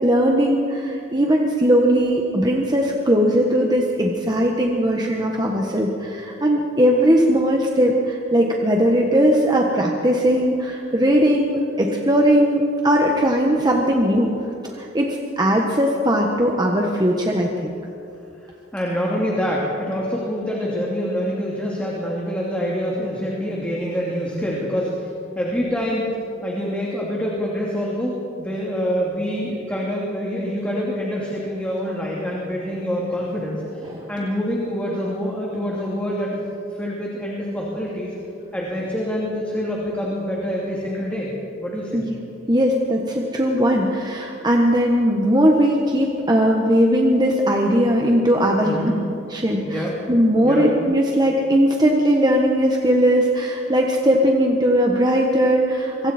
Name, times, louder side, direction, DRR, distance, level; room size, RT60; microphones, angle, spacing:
voice 1, 0.0-14.3 14.6-17.8 33.9-34.1 41.9-42.2 42.5-48.9 49.3-56.1, equal, 20° right, 0 dB, 1.5 m, -19 dB
voice 2, 18.7-25.1 25.4-26.1 26.4-36.4 36.8-38.1 38.5-41.3 41.6-42.0 48.6-49.0 49.7-49.9 50.4-50.7, equal, 5° left, -4 dB, 2.7 m, -26 dB
26.0 x 23.0 x 4.5 m, 2.7 s
head